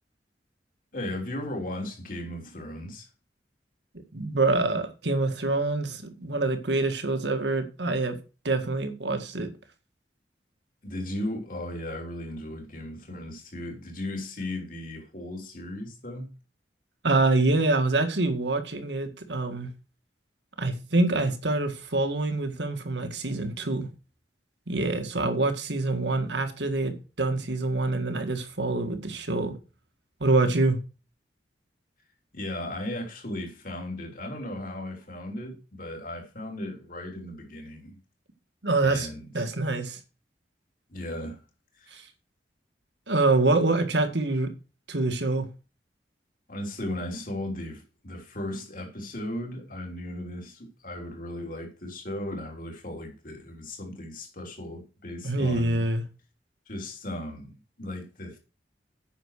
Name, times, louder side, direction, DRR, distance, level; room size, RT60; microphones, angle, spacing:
voice 1, 0.9-3.1 10.8-16.3 32.3-38.0 38.8-39.3 40.9-41.4 41.7-42.0 46.5-55.9 56.7-58.4, left 1 dB, 50° left, 3.2 m, -36 dB
voice 2, 4.1-8.2 8.4-9.5 17.0-19.7 20.6-23.9 24.7-29.6 30.2-30.8 38.6-39.1 39.3-40.0 41.9-42.1 43.1-44.5 44.9-45.5 55.2-56.0, right 2 dB, 80° right, 1.8 m, -25 dB
9.1 x 6.2 x 6.4 m
head